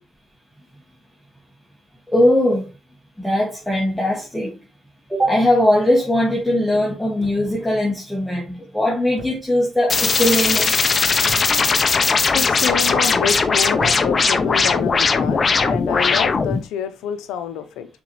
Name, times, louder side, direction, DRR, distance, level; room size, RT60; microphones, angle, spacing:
voice 1, 2.1-2.7 3.2-4.5 5.1-10.7, left 1 dB, ahead, 2.1 m, -19 dB
sound 1, 7.2-7.7 9.2-9.6 9.8-10.3 11.3-11.8 12.5-12.9 13.7-14.4 15.3-15.6, right 3 dB, 65° right, 1.8 m, -37 dB
sound 2, 9.9-16.6, left 4 dB, 40° left, 0.8 m, -18 dB
voice 2, 12.3-17.9, left 8 dB, 90° left, 0.8 m, -27 dB
6.9 x 4.3 x 3.2 m
cardioid pair, 75°, 0 cm